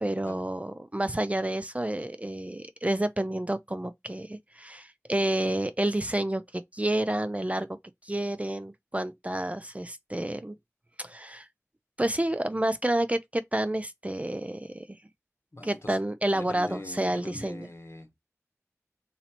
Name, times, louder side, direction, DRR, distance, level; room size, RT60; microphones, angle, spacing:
voice 1, 0.0-7.8 8.0-10.5 11.0-11.5 12.0-14.9 15.6-17.7, right 1 dB, 25° right, 0.4 m, -29 dB
voice 2, 15.5-16.0 16.3-18.2, left 2 dB, 55° left, 1.1 m, -43 dB
3.1 x 2.7 x 4.3 m
wide cardioid pair, 40°, 5 cm